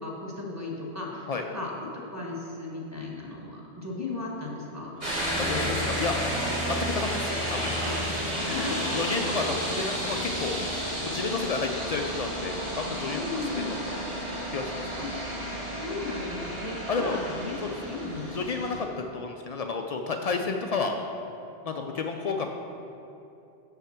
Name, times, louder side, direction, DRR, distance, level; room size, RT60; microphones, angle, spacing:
voice 1, 0.0-4.9 8.4-9.0 9.4-9.5 13.1-13.8 15.0-15.1 15.7-17.5 17.8-18.3, left 3 dB, 15° right, -4 dB, 1.1 m, -36 dB
sound 1, 5.0-18.8, equal, 60° right, 2.4 m, -31 dB
voice 2, 5.4-6.1 6.7-10.6 11.0-13.7 14.5-14.9 15.7-15.8 16.9-17.2 17.6-17.7 18.3-21.0 21.6-22.5, left 4 dB, 70° left, 3 dB, 0.3 m, -31 dB
6.4 x 5.7 x 5.8 m, 2.8 s
omnidirectional pair, 1.2 m